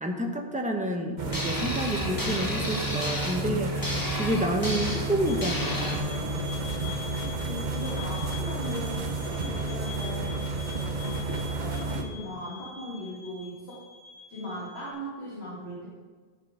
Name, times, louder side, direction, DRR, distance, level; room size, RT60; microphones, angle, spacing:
voice 1, 0.0-3.8 4.2-6.4, right 1 dB, 10° right, 3 dB, 1.0 m, -29 dB
sound 1, 1.2-12.0, right 2 dB, 50° right, 1.1 m, -31 dB
sound 2, 1.3-6.0, left 1 dB, 20° left, 1.1 m, -33 dB
sound 3, 5.2-14.9, left 4 dB, 60° left, 2.1 m, -45 dB
voice 2, 6.8-10.7 11.0-13.8 14.3-15.9, equal, 85° left, -7 dB, 2.4 m, -39 dB
11.0 x 6.7 x 5.0 m, 1.5 s
omnidirectional pair, 1.0 m